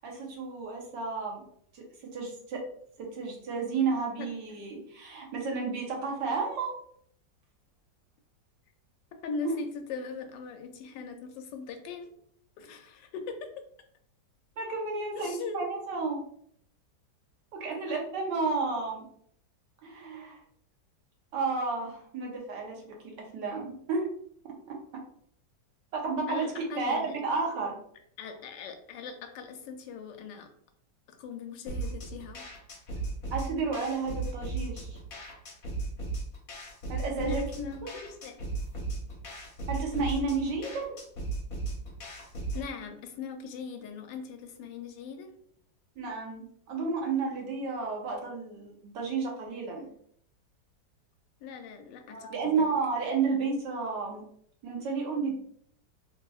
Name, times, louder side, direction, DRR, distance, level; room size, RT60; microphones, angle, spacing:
voice 1, 0.0-1.4 1.7-2.6 3.0-6.7 9.4-9.6 14.6-16.2 17.5-19.0 19.8-20.4 21.3-24.1 24.4-25.0 25.9-27.8 33.3-35.0 36.9-37.4 37.8-37.9 39.7-41.0 46.0-49.9 52.1-54.2 54.6-55.4, right 4 dB, 75° right, 1 dB, 1.5 m, -32 dB
voice 2, 9.2-12.1 12.6-13.5 15.1-15.6 26.3-27.1 28.2-30.5 31.1-32.4 37.2-38.3 42.5-45.3 51.4-52.7, left 5 dB, 80° left, 5 dB, 1.2 m, -40 dB
sound 1, 31.7-42.7, right 3 dB, 60° left, 1.2 m, -36 dB
3.8 x 2.7 x 2.3 m, 0.63 s
omnidirectional pair, 1.9 m